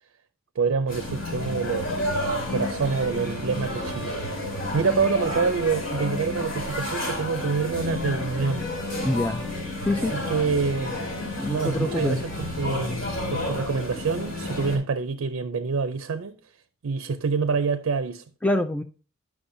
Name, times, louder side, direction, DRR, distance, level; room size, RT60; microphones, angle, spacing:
voice 1, 0.6-2.0 2.5-4.2 4.7-8.7 9.9-11.0 11.5-13.0 13.3-16.4 16.8-18.2, right 5 dB, 75° right, 0.5 m, -26 dB
sound 1, 0.9-14.8, left 1 dB, 65° left, 3.5 m, -30 dB
voice 2, 9.0-9.4 9.9-10.1 11.4-12.2 18.4-18.8, left 1 dB, 5° left, 0.3 m, -25 dB
9.7 x 6.1 x 2.6 m
head